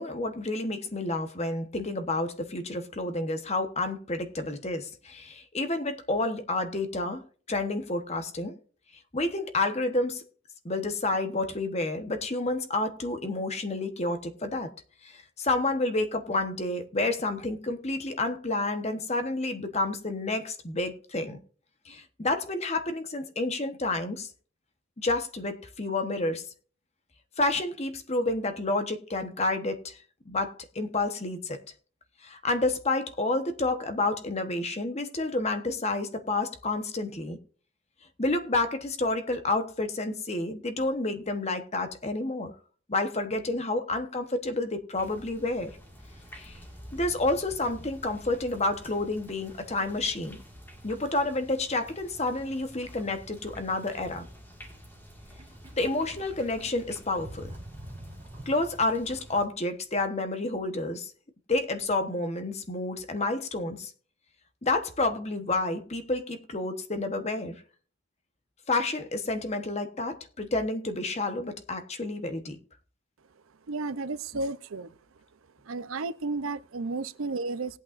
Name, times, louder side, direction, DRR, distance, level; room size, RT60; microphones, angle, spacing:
voice 1, 0.0-7.2 7.5-8.6 9.1-10.2 10.6-14.7 15.0-21.4 21.9-24.3 25.0-26.4 27.4-30.0 30.3-31.6 32.2-37.4 38.2-42.5 42.9-45.8 46.3-46.6 46.9-50.4 50.8-54.3 55.8-57.5 58.5-61.1 61.5-63.9 64.6-67.6 68.7-72.6, left 2 dB, 30° left, 1.1 m, -29 dB
sound 1, 44.9-59.4, equal, 10° left, 1.9 m, -49 dB
Sink (filling or washing), 55.3-59.0, right 1 dB, 25° right, 2.7 m, -46 dB
voice 2, 73.7-74.9 75.7-77.8, right 3 dB, 85° right, 0.6 m, -33 dB
19.0 x 8.5 x 2.5 m
head